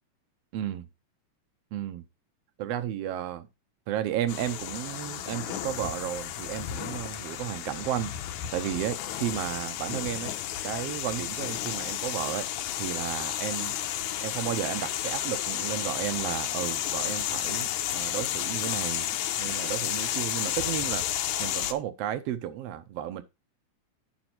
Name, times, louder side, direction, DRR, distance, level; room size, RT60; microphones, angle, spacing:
voice 1, 0.5-0.9 1.7-2.0 2.6-3.5 3.9-10.3 10.6-12.5 12.8-13.7 14.2-19.1 19.4-21.0 21.4-23.2, right 11 dB, 70° right, 1.6 m, -33 dB
sound 1, 4.3-21.7, left 11 dB, 75° left, 2.0 m, -32 dB
9.6 x 5.4 x 4.4 m
omnidirectional pair, 3.7 m